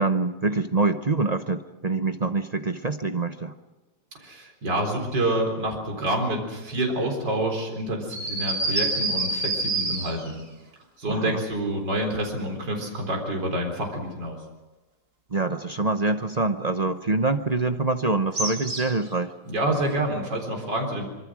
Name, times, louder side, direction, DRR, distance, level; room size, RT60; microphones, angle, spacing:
voice 1, 0.0-3.5 11.1-11.4 15.3-19.3, right 3 dB, 35° right, 8 dB, 0.7 m, -25 dB
voice 2, 4.2-10.4 11.0-14.4 19.4-21.1, right 1 dB, 75° right, 1 dB, 4.7 m, -27 dB
sound 1, 8.1-10.4 18.3-19.1, right 2 dB, 60° right, 4.3 m, -27 dB
25.5 x 24.5 x 6.3 m, 1.1 s
omnidirectional pair, 1.9 m